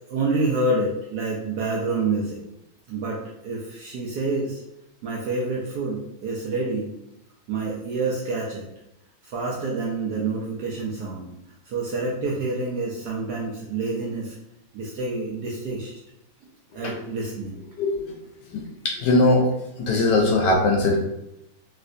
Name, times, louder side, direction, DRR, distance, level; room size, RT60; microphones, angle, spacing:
voice 1, 0.1-2.4 2.9-4.6 5.0-6.9 7.5-8.6 9.2-11.3 11.6-14.3 14.7-16.0 16.7-17.6, right 3 dB, 75° right, -3 dB, 0.9 m, -27 dB
voice 2, 17.8-18.1 18.5-19.5 19.8-21.0, left 2 dB, 70° left, 0 dB, 1.1 m, -20 dB
3.2 x 2.8 x 2.5 m, 0.85 s
omnidirectional pair, 2.2 m